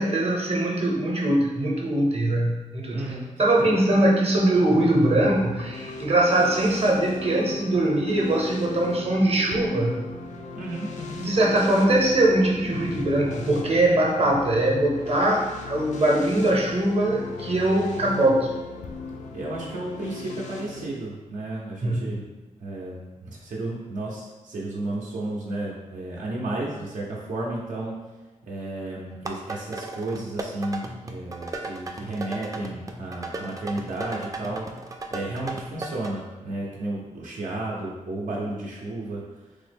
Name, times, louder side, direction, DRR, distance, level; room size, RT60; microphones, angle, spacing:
voice 1, 0.0-3.1 3.4-10.0 11.2-18.5 21.8-22.1, right 1 dB, 50° right, -2 dB, 0.7 m, -22 dB
voice 2, 2.9-3.3 3.6-4.0 10.6-11.2 19.3-22.2 22.6-28.0 28.4-34.7 35.1-39.2, right 2 dB, 85° right, -4 dB, 0.6 m, -33 dB
sound 1, 4.5-20.9, left 4 dB, 70° left, 0.4 m, -38 dB
sound 2, 29.1-36.1, right 2 dB, 25° right, 0.3 m, -36 dB
3.2 x 2.0 x 3.3 m, 1.2 s
wide cardioid pair, 80°, 13 cm